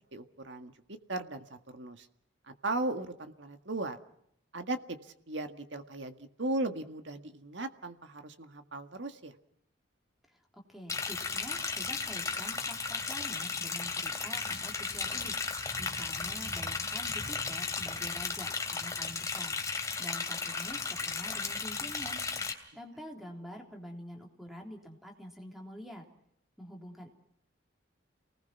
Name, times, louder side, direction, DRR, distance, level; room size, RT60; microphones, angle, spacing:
voice 1, 0.1-2.1 2.5-4.0 4.5-9.3, right 2 dB, 70° right, 7 dB, 1.8 m, -37 dB
voice 2, 10.5-15.4 15.8-19.6 20.0-22.2 22.7-26.1 26.6-27.1, equal, ahead, 1 dB, 3.6 m, -46 dB
Liquid, 10.9-22.5, left 4 dB, 15° left, 2.8 m, -35 dB
29.0 x 19.5 x 5.9 m, 0.74 s
head